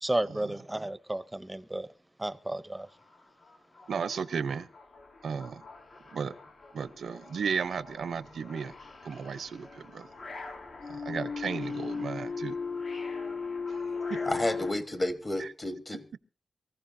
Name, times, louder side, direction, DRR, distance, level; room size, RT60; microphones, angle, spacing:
voice 1, 0.0-1.9 2.2-2.9, right 1 dB, 10° right, 14 dB, 0.7 m, -32 dB
sound 1, 2.8-2.9 3.2-14.7, left 4 dB, 75° left, 3.5 m, -38 dB
voice 2, 3.9-4.7 5.2-5.7 6.1-6.4 6.7-8.7 9.0-10.1 10.9-12.6 13.7-13.8 14.1-14.2 15.4-15.5, right 6 dB, 80° right, 15 dB, 0.7 m, -34 dB
voice 3, 14.2-16.2, left 1 dB, 25° left, 9 dB, 1.2 m, -31 dB
24.0 x 15.0 x 2.7 m, 0.33 s
wide cardioid pair, 130°, 0 cm